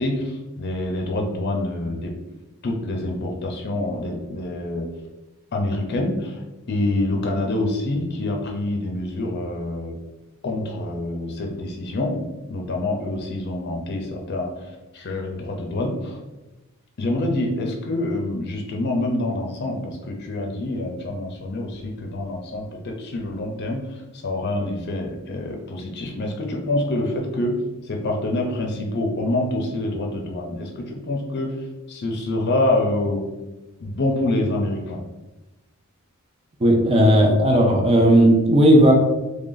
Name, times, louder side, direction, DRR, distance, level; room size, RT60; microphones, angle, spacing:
voice 1, 0.0-2.1 2.6-4.9 5.5-10.0 10.4-16.2 17.0-33.2 33.8-35.0, left 1 dB, 50° left, 1 dB, 0.5 m, -26 dB
voice 2, 36.6-38.9, right 1 dB, 25° right, 1 dB, 0.5 m, -15 dB
3.2 x 2.5 x 3.8 m, 1.1 s
head